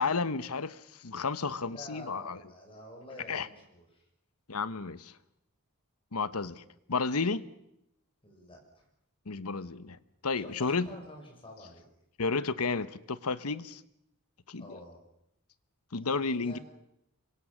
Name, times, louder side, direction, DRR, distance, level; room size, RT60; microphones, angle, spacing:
voice 1, 0.0-2.4 3.3-3.5 4.5-5.1 6.1-6.6 6.9-7.4 9.3-10.0 10.2-10.9 12.2-13.8 14.5-14.8 15.9-16.6, left 4 dB, 80° left, 15 dB, 1.1 m, -32 dB
voice 2, 1.6-4.1 8.2-8.8 10.3-11.8 14.6-15.0 16.0-16.6, left 1 dB, 25° left, 1 dB, 7.2 m, -49 dB
25.5 x 23.0 x 7.4 m, 0.80 s
head